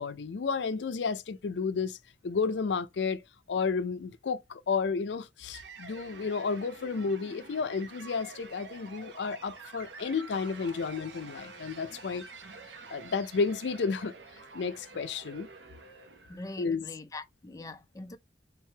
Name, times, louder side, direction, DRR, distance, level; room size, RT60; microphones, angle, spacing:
voice 1, 0.0-2.0 2.2-3.2 3.5-12.3 12.9-14.1 14.5-15.5 16.6-16.8, left 5 dB, 80° left, 0.4 m, -32 dB
sound 1, 5.5-16.7, right 4 dB, 85° right, 0.9 m, -48 dB
voice 2, 16.3-18.2, left 2 dB, 20° left, 0.5 m, -43 dB
3.6 x 3.2 x 3.2 m
head